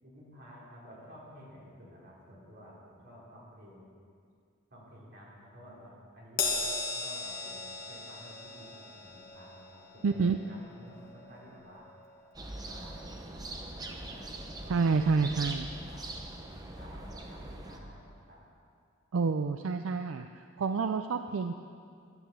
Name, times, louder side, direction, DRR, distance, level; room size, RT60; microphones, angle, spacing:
voice 1, 0.0-3.9 4.7-6.4 6.9-11.9 12.6-15.6 15.9-16.0 16.8-18.4, equal, 50° right, -6 dB, 3.7 m, -52 dB
Crash cymbal, 6.4-13.0 13.3-13.6 14.6-14.7, left 3 dB, 45° left, 1.4 m, -38 dB
voice 2, 10.0-10.4 14.7-15.7 19.1-21.6, right 4 dB, 80° right, 7 dB, 0.4 m, -28 dB
sound 1, 12.3-17.8, right 2 dB, 20° right, 0.8 m, -42 dB
10.5 x 10.0 x 7.3 m, 2.3 s
head